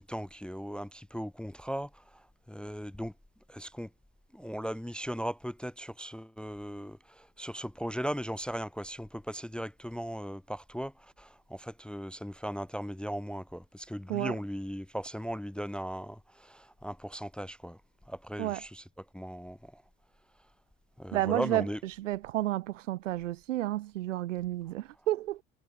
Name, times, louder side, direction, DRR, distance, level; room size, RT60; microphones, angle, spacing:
voice 1, 0.0-3.1 3.5-3.9 4.3-17.8 18.1-18.8 19.1-19.8 21.0-21.8, equal, ahead, 0.7 m, -38 dB
voice 2, 21.1-25.4, right 15 dB, 75° right, 1.1 m, -31 dB
figure-of-eight pair, 60°, 38 cm